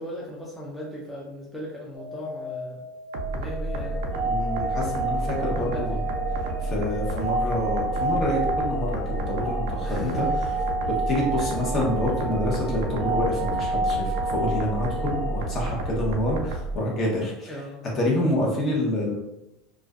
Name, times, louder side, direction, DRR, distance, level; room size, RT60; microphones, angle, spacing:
voice 1, 0.0-2.8 3.3-4.0 5.2-6.1 9.8-10.6 11.4-11.5 17.5-17.8, equal, 5° left, -5 dB, 0.4 m, -37 dB
sound 1, 1.9-14.8, left 1 dB, 55° left, 1.4 m, -40 dB
sound 2, 3.1-16.8, right 2 dB, 85° right, 0.3 m, -31 dB
sound 3, 3.7-16.5, right 2 dB, 75° left, 1.1 m, -30 dB
voice 2, 4.2-6.0 6.6-10.3 10.9-17.6 17.9-19.2, left 1 dB, 35° left, -3 dB, 0.8 m, -27 dB
2.4 x 2.2 x 2.3 m, 0.88 s
supercardioid pair, 115°, 0 cm